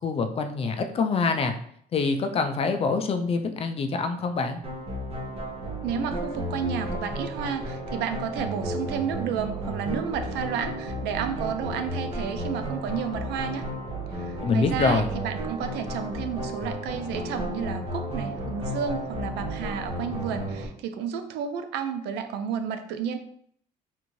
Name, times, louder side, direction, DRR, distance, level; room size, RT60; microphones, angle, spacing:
voice 1, 0.0-1.5 1.9-4.6 14.4-15.1, left 4 dB, 35° left, 7 dB, 0.4 m, -25 dB
sound 1, 4.6-20.7, right 1 dB, 35° right, 0.9 m, -33 dB
voice 2, 5.8-13.7 14.1-23.2, right 7 dB, 80° right, 9 dB, 0.5 m, -31 dB
3.6 x 2.5 x 3.0 m, 0.64 s
cardioid pair, 110°, 17 cm